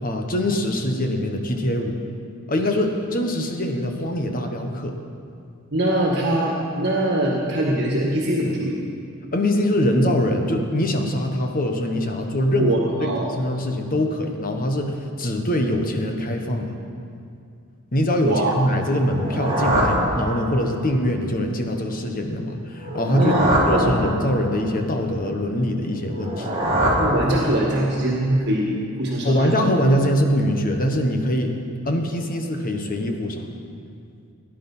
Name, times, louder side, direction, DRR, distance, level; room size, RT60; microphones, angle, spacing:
voice 1, 0.0-2.0 2.5-5.0 9.3-12.7 13.0-16.7 17.9-23.3 23.7-26.5 29.2-31.5 31.8-33.5, left 1 dB, 40° left, 4 dB, 1.3 m, -23 dB
voice 2, 5.7-8.8 12.5-13.3 18.2-18.9 23.1-23.9 27.0-29.6, right 1 dB, 55° right, -3 dB, 1.7 m, -22 dB
sound 1, 19.0-20.8 22.7-24.6 26.1-27.9, right 1 dB, 30° right, 2.6 m, -23 dB
18.0 x 10.5 x 5.6 m, 2.4 s
head